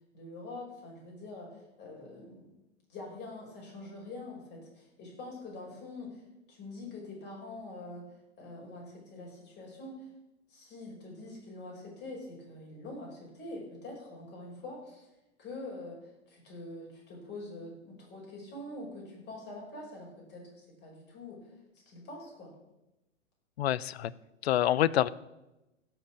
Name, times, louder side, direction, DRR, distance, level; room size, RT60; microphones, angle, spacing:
voice 1, 0.1-2.5 2.9-10.1 10.5-15.1 15.4-21.5 21.9-22.5, left 2 dB, 30° left, -2 dB, 5.5 m, -45 dB
voice 2, 23.6-24.1 24.4-25.1, left 12 dB, 60° left, 19 dB, 0.6 m, -26 dB
16.5 x 6.1 x 6.3 m, 0.97 s
figure-of-eight pair, 105°, 37 cm